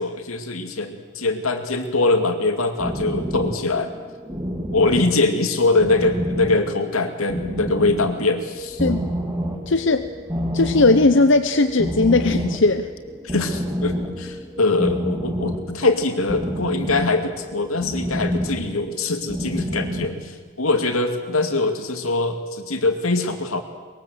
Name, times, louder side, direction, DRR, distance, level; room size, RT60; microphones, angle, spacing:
voice 1, 0.0-4.0 4.7-8.8 13.2-23.6, left 2 dB, 85° left, 6 dB, 2.5 m, -22 dB
sound 1, 2.8-20.2, equal, 15° right, 3.3 m, -29 dB
voice 2, 9.7-10.1 10.5-12.9, left 3 dB, 60° left, 9 dB, 0.8 m, -18 dB
22.5 x 22.0 x 8.1 m, 1.4 s
head